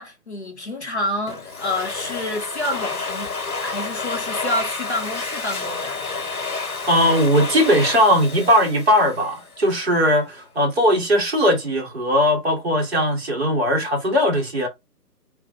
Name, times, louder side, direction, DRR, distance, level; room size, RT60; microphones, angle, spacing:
voice 1, 0.0-3.3 3.6-6.0, left 1 dB, 45° left, 0.7 m, -28 dB
Domestic sounds home sounds, 1.3-9.7, left 4 dB, 60° left, 1.0 m, -30 dB
voice 2, 6.9-14.7, equal, 40° right, 1.3 m, -19 dB
3.3 x 2.1 x 3.3 m
hypercardioid pair, 170°, 49 cm